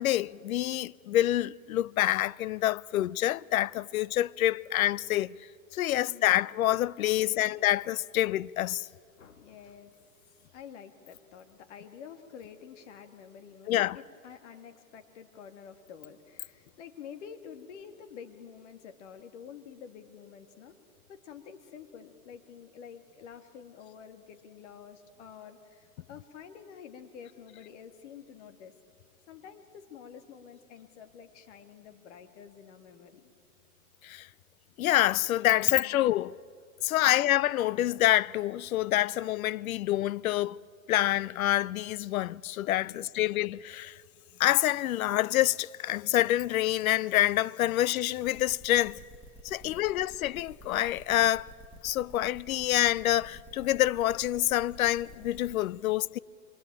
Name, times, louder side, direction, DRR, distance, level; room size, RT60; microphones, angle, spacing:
voice 1, 0.0-5.3 5.7-8.9 13.7-14.0 34.0-34.3 34.8-36.4 36.8-40.6 40.9-44.0 44.4-49.0 49.4-51.5 51.8-56.2, left 14 dB, 70° left, 0.6 m, -27 dB
voice 2, 6.0-6.4 7.4-7.6 9.1-20.8 21.1-28.7 29.3-33.3 35.7-36.1 37.0-37.2 42.9-43.0 49.6-49.8, left 7 dB, 55° left, 2.1 m, -49 dB
sound 1, 48.2-55.5, right 1 dB, 5° right, 1.4 m, -50 dB
26.0 x 22.0 x 8.9 m
hypercardioid pair, 145°, 43 cm